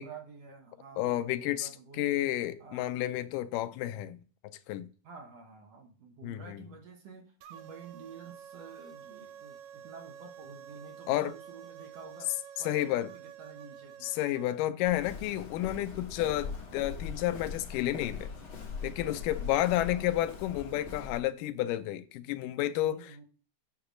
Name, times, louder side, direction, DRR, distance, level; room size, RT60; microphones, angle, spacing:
voice 1, 0.0-2.9 5.0-14.1 19.6-20.1 22.7-23.2, right 5 dB, 65° right, 1.8 m, -50 dB
voice 2, 1.0-1.7 2.0-4.2 4.7-4.9 6.2-6.6 11.1-11.3 12.7-13.1 14.0-18.3 18.8-23.3, left 14 dB, 85° left, 2.2 m, -31 dB
sound 1, 7.4-14.6, right 9 dB, 80° right, 1.7 m, -49 dB
Walk footsteps, 14.8-21.2, left 5 dB, 50° left, 2.0 m, -41 dB
8.4 x 2.9 x 6.1 m
omnidirectional pair, 3.7 m